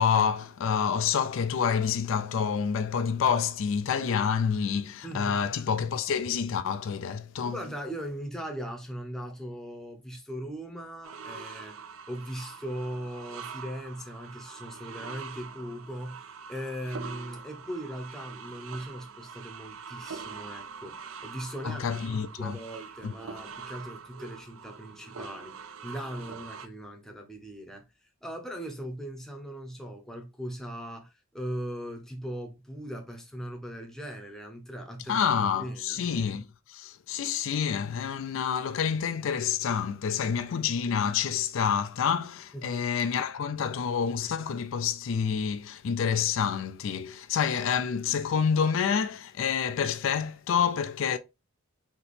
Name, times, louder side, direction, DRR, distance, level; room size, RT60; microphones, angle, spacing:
voice 1, 0.0-7.6 21.6-22.6 23.0-23.1 35.1-51.2, left 7 dB, 65° left, 0.3 m, -28 dB
voice 2, 5.0-5.5 7.4-21.9 22.4-36.1 42.5-42.9, equal, ahead, 0.7 m, -39 dB
sound 1, 11.0-26.7, right 6 dB, 70° right, 0.5 m, -44 dB
4.1 x 2.9 x 3.3 m
head